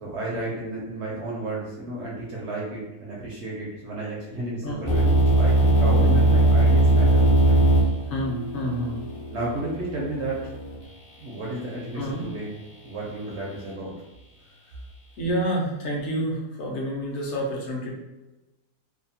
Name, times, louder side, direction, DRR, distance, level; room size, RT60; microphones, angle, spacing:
voice 1, 0.0-7.6 9.3-10.4 11.2-12.5 12.8-13.9, right 2 dB, 65° right, -4 dB, 0.7 m, -32 dB
sound 1, 4.8-10.8, right 2 dB, 35° left, 0.3 m, -20 dB
voice 2, 8.0-9.0 11.9-12.2 14.4-14.8 15.2-17.9, equal, 60° left, -3 dB, 0.8 m, -29 dB
2.7 x 2.2 x 2.7 m, 1.0 s
omnidirectional pair, 1.7 m